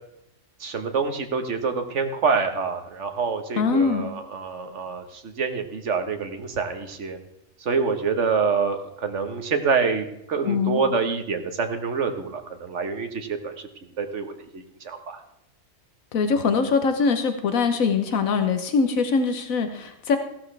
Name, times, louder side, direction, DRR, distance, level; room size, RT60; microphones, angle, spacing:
voice 1, 0.6-7.2 7.6-13.5 14.0-15.2, right 5 dB, 60° right, 7 dB, 1.5 m, -26 dB
voice 2, 3.6-4.1 10.4-10.8 16.1-20.2, left 5 dB, 85° left, 8 dB, 1.3 m, -22 dB
15.0 x 12.0 x 3.3 m, 0.82 s
omnidirectional pair, 1.4 m